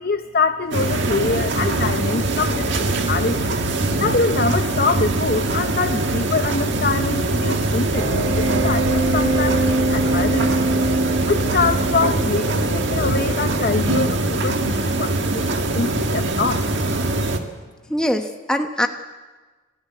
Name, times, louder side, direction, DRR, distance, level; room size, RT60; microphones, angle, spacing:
voice 1, 0.0-3.6 4.0-10.5 11.3-15.5 15.7-16.7, left 4 dB, 45° left, 9 dB, 0.7 m, -24 dB
sound 1, 0.7-17.4, right 2 dB, 60° right, 1.8 m, -22 dB
sound 2, 7.9-14.4, right 2 dB, 80° right, 5.5 m, -24 dB
voice 2, 17.9-18.9, equal, 5° left, 4 dB, 1.1 m, -22 dB
28.5 x 13.0 x 8.5 m, 1.3 s
head